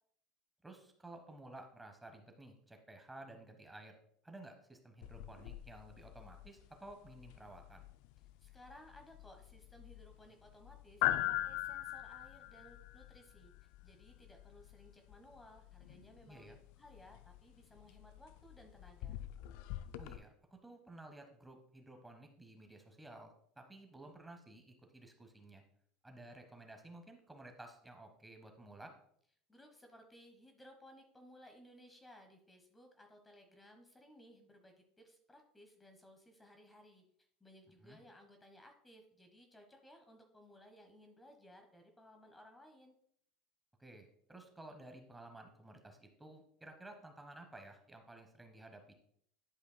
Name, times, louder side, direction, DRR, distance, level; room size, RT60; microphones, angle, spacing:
voice 1, 0.6-4.0 4.2-7.9 16.3-16.6 20.0-25.6 26.0-28.9 37.8-38.0 43.8-48.9, right 2 dB, 10° right, 4 dB, 1.2 m, -54 dB
sound 1, 5.0-20.2, left 14 dB, 65° left, 0.4 m, -43 dB
voice 2, 8.4-13.5 13.8-19.2 29.5-37.0 37.4-42.9, equal, 10° left, 4 dB, 1.1 m, -60 dB
11.0 x 5.1 x 2.2 m, 0.67 s
hypercardioid pair, 80°, 0 cm